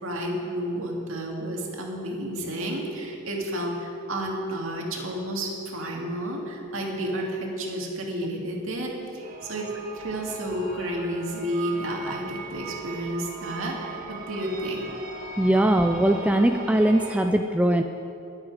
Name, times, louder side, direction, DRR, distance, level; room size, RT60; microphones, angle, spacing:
voice 1, 0.0-9.7 9.9-14.9, right 1 dB, 65° right, -1 dB, 2.3 m, -31 dB
sound 1, 9.2-17.2, right 3 dB, 40° right, 1.4 m, -39 dB
voice 2, 15.4-17.8, right 1 dB, 5° right, 5 dB, 0.3 m, -21 dB
21.0 x 8.4 x 4.9 m, 2.9 s
head